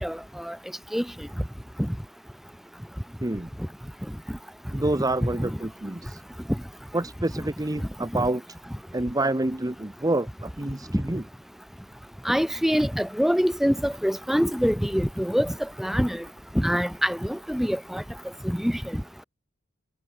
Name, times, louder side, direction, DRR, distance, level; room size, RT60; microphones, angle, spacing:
voice 1, 0.0-0.6 0.9-1.0 1.8-1.9 5.4-5.5 7.4-7.5 8.1-8.3 10.9-11.0 12.3-16.2 16.5-18.0 18.4-18.8, equal, ahead, 2.2 m, -25 dB
voice 2, 4.7-6.2 6.9-8.4 8.9-11.2, right 2 dB, 20° right, 1.0 m, -28 dB
head